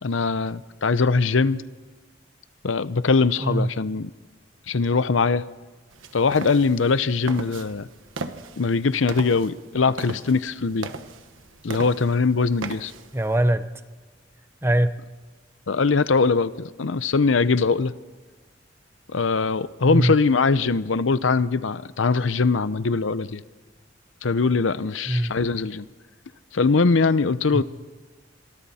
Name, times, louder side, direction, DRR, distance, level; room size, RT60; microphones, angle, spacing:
voice 1, 0.0-1.6 2.6-4.1 4.7-5.4 6.1-7.9 8.6-10.9 11.6-12.9 15.7-17.9 19.1-23.4 24.2-25.9 26.5-27.6, left 4 dB, 85° left, 15 dB, 0.7 m, -21 dB
voice 2, 3.4-3.7 13.1-13.7 14.6-14.9 19.9-20.2 25.1-25.3 27.5-27.6, right 1 dB, 10° right, 11 dB, 0.7 m, -21 dB
sound 1, 5.9-13.4, right 3 dB, 90° right, 1.3 m, -38 dB
27.5 x 23.0 x 4.3 m, 1.3 s
head